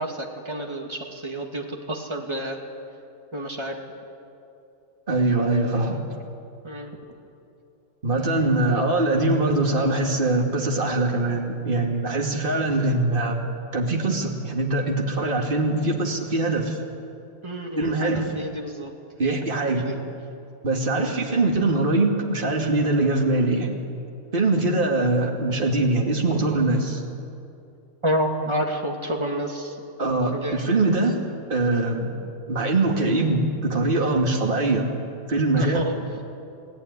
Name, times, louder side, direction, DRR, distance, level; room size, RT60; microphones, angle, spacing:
voice 1, 0.0-2.6 3.3-3.8 6.6-6.9 17.4-18.9 19.2-20.0 20.9-21.2 28.0-29.8 30.3-30.7 35.5-36.0, right 1 dB, 20° right, 1 dB, 2.7 m, -29 dB
voice 2, 5.1-6.0 8.0-16.8 17.8-18.3 19.2-19.8 20.6-23.7 24.3-27.0 30.0-31.2 31.5-32.1 32.5-34.9 35.3-35.8, right 2 dB, 35° right, 1 dB, 2.6 m, -22 dB
29.5 x 17.5 x 9.8 m, 2.7 s
omnidirectional pair, 1.6 m